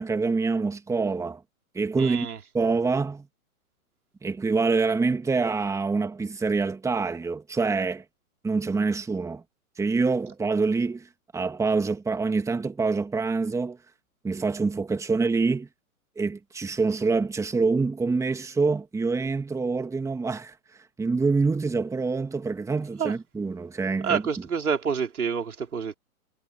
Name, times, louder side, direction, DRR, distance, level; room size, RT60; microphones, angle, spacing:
voice 1, 0.0-1.4 1.7-2.3 2.5-3.3 4.2-8.0 8.4-9.4 9.8-13.8 14.2-15.7 16.2-20.6 21.0-24.3, right 4 dB, 5° right, 2.2 m, -26 dB
voice 2, 2.0-2.4 23.0-23.1 24.0-25.9, right 6 dB, 80° right, 4.9 m, -27 dB
hypercardioid pair, 125°, 44 cm